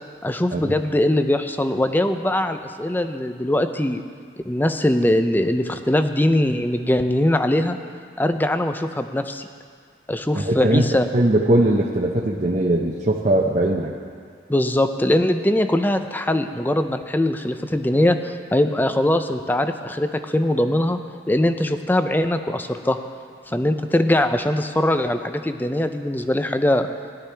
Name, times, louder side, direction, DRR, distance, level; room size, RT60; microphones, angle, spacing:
voice 1, 0.2-4.0 4.5-7.8 8.2-9.5 10.1-11.1 14.5-21.0 21.3-23.0 23.5-26.9, left 1 dB, 10° left, 8 dB, 0.4 m, -21 dB
voice 2, 10.3-10.9 11.1-13.9, right 1 dB, 40° right, -2 dB, 0.7 m, -20 dB
17.0 x 11.5 x 3.4 m, 2.1 s
head